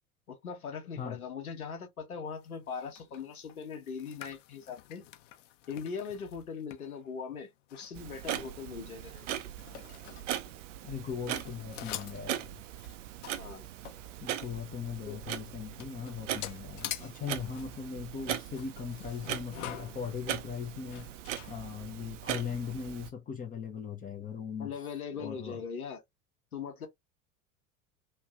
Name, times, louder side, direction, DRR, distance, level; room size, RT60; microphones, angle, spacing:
voice 1, 0.3-5.1 5.7-9.4 13.4-13.6 15.1-15.2 24.6-26.0 26.5-26.9, left 6 dB, 80° left, 1.2 m, -40 dB
sound 1, 2.4-11.0 11.3-14.6 15.0-15.1 15.3-22.1, left 13 dB, 55° left, 0.9 m, -47 dB
Clock, 7.9-23.1, right 11 dB, 60° right, 0.5 m, -40 dB
voice 2, 10.8-12.6 14.2-21.1 21.5-24.7 25.2-25.6, left 7 dB, 20° left, 0.6 m, -39 dB
3.1 x 2.3 x 2.4 m
figure-of-eight pair, 80°, 43 cm